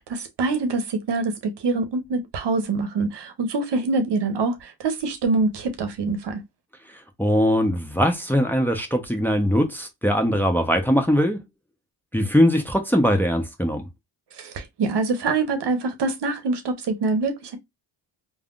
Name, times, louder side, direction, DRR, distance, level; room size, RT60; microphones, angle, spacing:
voice 1, 0.0-6.4 14.3-17.6, right 3 dB, 60° right, 0.9 m, -25 dB
voice 2, 7.2-11.4 12.1-13.8, equal, 5° left, 0.7 m, -21 dB
3.4 x 2.2 x 2.4 m
supercardioid pair, 60°, 46 cm